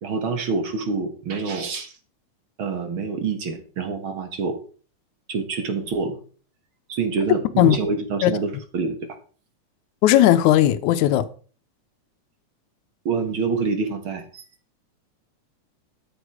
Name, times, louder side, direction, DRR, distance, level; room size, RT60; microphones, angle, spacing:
voice 1, 0.0-1.9 2.6-4.6 5.3-6.2 6.9-9.0 13.1-14.4, right 4 dB, 50° right, 1.9 m, -26 dB
voice 2, 10.0-11.3, left 13 dB, 80° left, 2.2 m, -16 dB
13.0 x 7.2 x 4.8 m
omnidirectional pair, 3.4 m